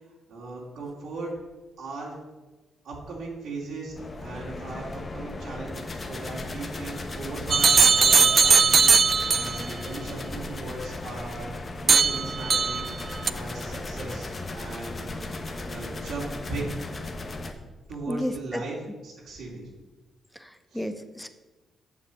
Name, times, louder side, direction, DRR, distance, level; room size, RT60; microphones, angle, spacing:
voice 1, 0.3-1.3 1.8-2.1 2.8-16.8 17.9-18.8 19.0-19.7 20.7-20.8, right 2 dB, 80° right, -4 dB, 2.5 m, -38 dB
sound 1, 3.9-17.5, left 2 dB, 35° left, 1.1 m, -36 dB
sound 2, 7.5-9.7 11.9-12.9 13.3-13.4, right 5 dB, 40° right, 0.3 m, -19 dB
voice 2, 18.1-18.6 20.3-21.3, equal, 5° left, 9 dB, 0.8 m, -32 dB
7.3 x 6.7 x 6.9 m, 1.2 s
cardioid pair, 85°, 0 cm